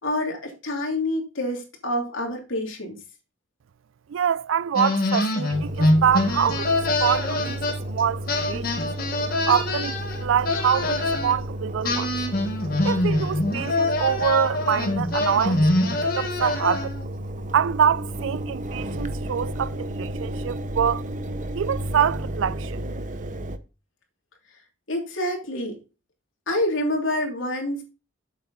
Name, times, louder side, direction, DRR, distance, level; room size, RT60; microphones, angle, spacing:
voice 1, 0.0-3.0 24.9-25.8 26.5-27.8, left 1 dB, 85° left, 3.0 m, -27 dB
voice 2, 4.1-6.7 7.0-8.7 9.5-12.1 12.8-15.7 16.2-16.9 17.5-21.0 21.5-22.8, right 8 dB, 75° right, 0.4 m, -25 dB
sound 1, 4.8-8.0 8.3-11.4 11.8-17.1, left 2 dB, 50° left, 1.5 m, -24 dB
Engine, 5.5-23.6, right 1 dB, 40° right, 0.7 m, -32 dB
7.6 x 7.2 x 4.0 m
head